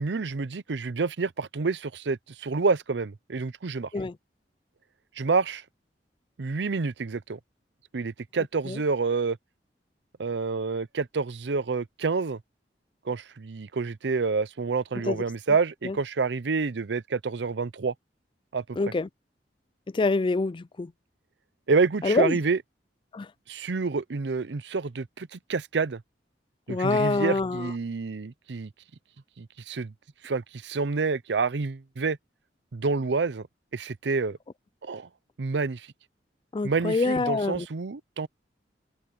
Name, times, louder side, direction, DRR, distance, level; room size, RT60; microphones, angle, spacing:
voice 1, 0.0-3.9 5.2-5.6 6.4-7.4 7.9-9.4 10.2-12.4 13.1-17.9 18.5-18.6 21.7-22.6 23.5-26.0 26.7-28.7 29.4-29.9 30.2-32.2 32.7-33.4 33.7-34.4 34.8-35.1 35.4-35.9 36.6-38.3, right 4 dB, 75° right, 0.6 m, -28 dB
voice 2, 18.8-19.1 19.9-20.9 22.0-22.4 23.1-23.3 26.7-27.7 36.5-37.7, left 3 dB, 30° left, 0.4 m, -26 dB
head